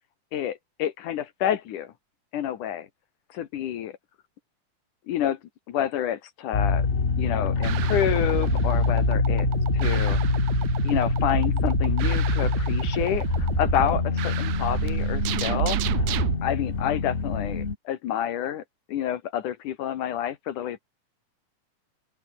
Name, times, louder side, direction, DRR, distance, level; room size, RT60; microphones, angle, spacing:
voice 1, 0.3-1.9 2.3-2.9 3.3-3.9 5.1-5.4 5.7-6.9 7.2-9.5 9.7-10.2 10.8-15.8 16.4-18.6 18.9-20.8, left 10 dB, 75° left, 2.8 m, -28 dB
sound 1, 6.5-17.7, left 4 dB, 30° left, 1.5 m, -25 dB
sound 2, 7.6-16.3, right 14 dB, 70° right, 2.1 m, -29 dB
open air
omnidirectional pair, 3.8 m